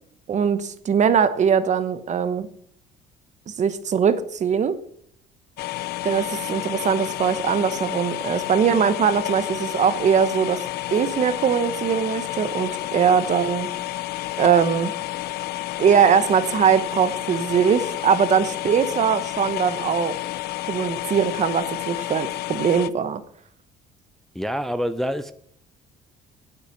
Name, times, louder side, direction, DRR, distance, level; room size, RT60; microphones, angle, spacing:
voice 1, 0.3-2.5 3.5-4.8 6.0-10.6 10.9-13.7 14.4-14.9 15.8-20.2 20.7-23.2, right 7 dB, 45° right, 12 dB, 1.0 m, -21 dB
sound 1, 5.6-22.9, left 17 dB, 75° left, 0.6 m, -30 dB
voice 2, 24.3-25.3, equal, ahead, 10 dB, 0.6 m, -26 dB
8.9 x 7.9 x 7.3 m, 0.64 s
cardioid pair, 110°, 17 cm